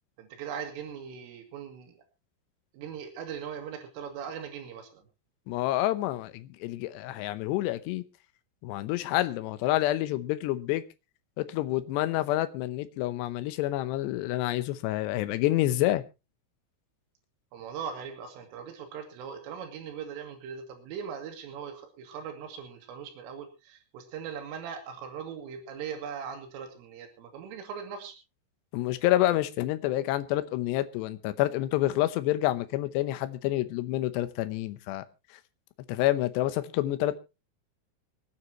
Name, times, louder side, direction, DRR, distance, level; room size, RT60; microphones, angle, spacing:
voice 1, 0.2-2.0 2.7-5.0 17.5-28.2, right 7 dB, 90° right, 4.5 m, -40 dB
voice 2, 5.5-8.0 8.6-10.8 11.4-16.0 28.7-35.0 35.9-37.2, left 15 dB, 75° left, 2.7 m, -28 dB
25.5 x 9.5 x 3.0 m
omnidirectional pair, 5.7 m